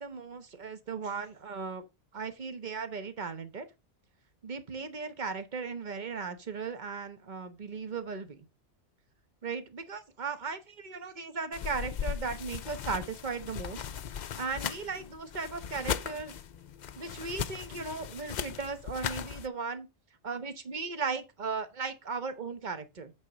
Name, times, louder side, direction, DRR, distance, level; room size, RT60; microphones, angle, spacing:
voice 1, 0.0-1.8 2.1-3.7 4.4-8.4 9.4-13.9 14.4-16.3 16.9-19.9 20.2-23.1, right 4 dB, 45° right, 1.2 m, -37 dB
sound 1, 11.5-19.5, left 8 dB, 55° left, 0.6 m, -38 dB
9.1 x 4.1 x 5.1 m
omnidirectional pair, 1.1 m